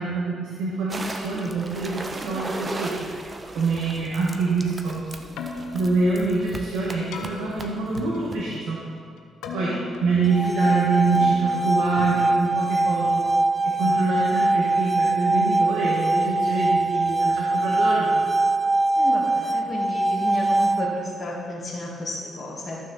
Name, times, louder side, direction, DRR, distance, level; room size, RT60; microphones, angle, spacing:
voice 1, 0.0-3.1 3.5-5.0 5.7-8.8 9.5-9.7 10.0-13.2 13.6-18.2, right 3 dB, 90° right, -5 dB, 1.6 m, -25 dB
sound 1, 0.9-8.6, right 2 dB, 25° right, 0.8 m, -37 dB
Keyboard (musical), 5.2-13.4, left 4 dB, 85° left, 0.9 m, -39 dB
voice 2, 9.5-9.8 19.0-22.9, left 2 dB, 30° left, -8 dB, 2.1 m, -32 dB
sound 2, 10.2-21.2, right 2 dB, ahead, 0.4 m, -22 dB
14.0 x 6.2 x 4.3 m, 2.3 s
cardioid pair, 90°, 0 cm